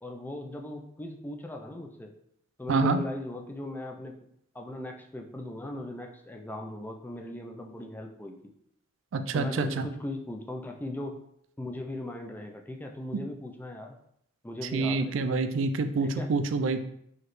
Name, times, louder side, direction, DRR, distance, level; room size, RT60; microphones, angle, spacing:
voice 1, 0.0-2.1 2.6-4.2 4.5-8.4 9.3-11.2 11.6-14.0 14.4-15.2 16.0-16.3, left 1 dB, 10° left, 3 dB, 0.4 m, -38 dB
voice 2, 2.7-3.0 9.1-9.9 14.7-16.8, right 3 dB, 70° right, 9 dB, 0.4 m, -27 dB
4.8 x 3.1 x 3.1 m, 0.71 s
head